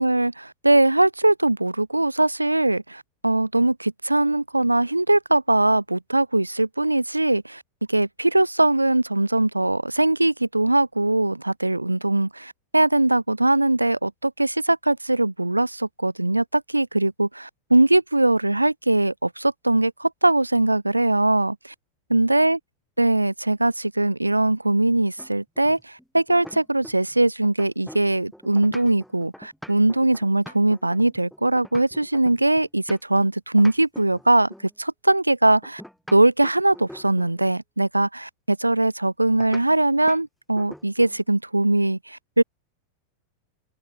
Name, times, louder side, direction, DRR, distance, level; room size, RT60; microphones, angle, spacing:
voice 1, 0.0-7.6 7.9-21.7 22.1-22.6 23.0-34.5 34.8-35.8 36.1-42.4, right 2 dB, 85° right, 0.4 m, -21 dB
sound 1, 25.2-27.2 27.4-33.3 33.6-34.7 35.6-37.4 39.4-39.7 40.1-40.3 40.6-41.2, equal, ahead, 3.9 m, -43 dB
open air
figure-of-eight pair, 90°, 0 cm